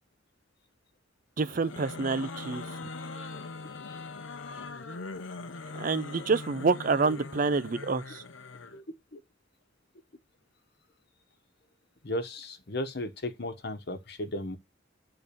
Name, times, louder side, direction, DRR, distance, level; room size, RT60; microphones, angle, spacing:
voice 1, 1.4-2.6 5.7-8.2, right 4 dB, 45° right, 0.5 m, -27 dB
sound 1, 1.5-8.8, left 3 dB, 85° left, 0.8 m, -41 dB
voice 2, 12.0-14.6, left 1 dB, 60° left, 1.2 m, -35 dB
8.8 x 3.9 x 6.9 m
head